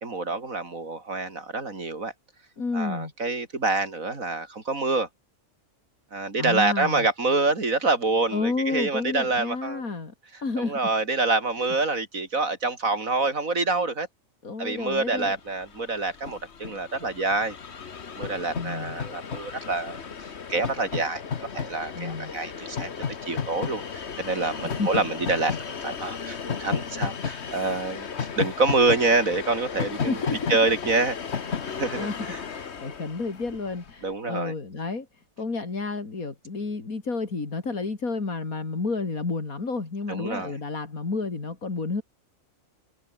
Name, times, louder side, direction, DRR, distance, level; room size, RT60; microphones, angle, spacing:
voice 1, 0.0-2.1 2.7-5.1 6.1-9.9 10.6-14.1 14.6-17.6 18.2-20.0 20.5-21.2 21.5-22.9 23.2-31.2 31.8-32.4 34.0-34.5 40.1-40.5, right 3 dB, 75° right, 4.0 m, -26 dB
voice 2, 2.6-3.1 6.4-7.1 8.3-10.1 10.4-10.9 14.4-15.4 18.5-19.0 22.0-22.3 24.6-25.1 30.0-30.5 31.6-35.1 35.4-42.0, left 3 dB, 90° left, 3.7 m, -31 dB
Train, 15.2-15.3 15.5-33.9, left 6 dB, 50° left, 1.6 m, -34 dB
omnidirectional pair, 1.4 m